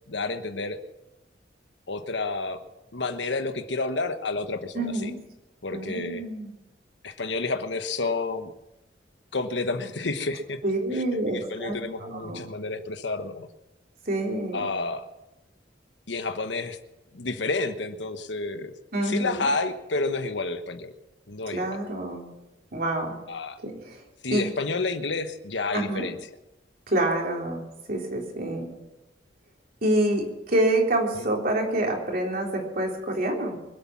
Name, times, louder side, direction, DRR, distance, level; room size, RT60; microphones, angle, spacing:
voice 1, 0.1-0.8 1.9-2.6 2.9-5.1 5.6-6.2 7.0-8.5 9.3-10.6 10.9-11.0 11.3-13.5 14.5-15.1 16.1-16.8 17.1-18.7 19.0-20.9 21.3-21.8 23.3-23.6 24.2-26.2, left 3 dB, 80° left, 9 dB, 1.2 m, -30 dB
voice 2, 4.7-5.1 5.7-6.5 10.6-12.4 14.1-14.7 18.9-19.4 21.5-22.3 22.7-23.2 23.6-24.0 24.3-24.4 25.7-26.0 26.9-28.7 29.8-33.6, right 1 dB, 55° right, 0 dB, 3.6 m, -27 dB
24.5 x 8.5 x 6.0 m, 0.95 s
head